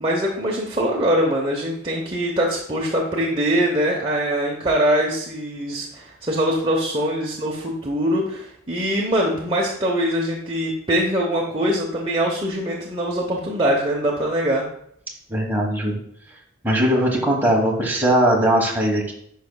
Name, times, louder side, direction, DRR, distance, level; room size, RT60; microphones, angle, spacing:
voice 1, 0.0-14.6, equal, 25° right, -3 dB, 0.9 m, -23 dB
voice 2, 15.3-16.0 16.6-19.1, right 1 dB, 10° right, -2 dB, 1.3 m, -19 dB
10.5 x 5.2 x 2.3 m, 0.70 s
head